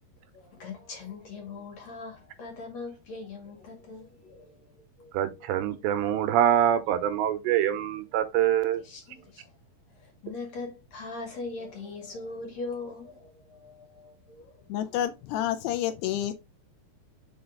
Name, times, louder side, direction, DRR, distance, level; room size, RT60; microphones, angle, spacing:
voice 1, 0.3-5.8 8.7-9.5 10.0-15.1 15.8-16.0, left 3 dB, 45° left, 2.7 m, -41 dB
voice 2, 5.1-8.8, right 10 dB, 85° right, 2.9 m, -25 dB
voice 3, 14.7-16.3, left 11 dB, 80° left, 2.5 m, -29 dB
5.8 x 5.4 x 3.8 m
omnidirectional pair, 5.0 m